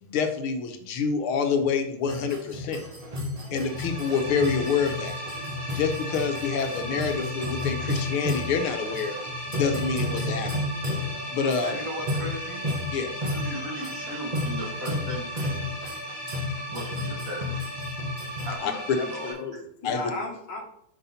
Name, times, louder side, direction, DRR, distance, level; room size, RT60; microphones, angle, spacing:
voice 1, 0.0-2.8 3.5-5.2 5.8-9.2 9.6-10.5 11.3-11.8 12.9-13.1 18.6-18.7 19.8-20.1, left 5 dB, 85° left, 6 dB, 1.8 m, -27 dB
sound 1, 2.1-18.5, left 2 dB, 30° right, 0.8 m, -33 dB
sound 2, 3.6-19.3, equal, 10° right, 1.9 m, -37 dB
voice 2, 11.6-12.7 13.3-15.6 16.7-17.7 18.4-19.3, right 1 dB, 45° right, -2 dB, 1.8 m, -37 dB
voice 3, 18.9-20.6, left 3 dB, 60° left, 2 dB, 1.7 m, -35 dB
5.9 x 5.6 x 4.1 m, 0.73 s
omnidirectional pair, 2.3 m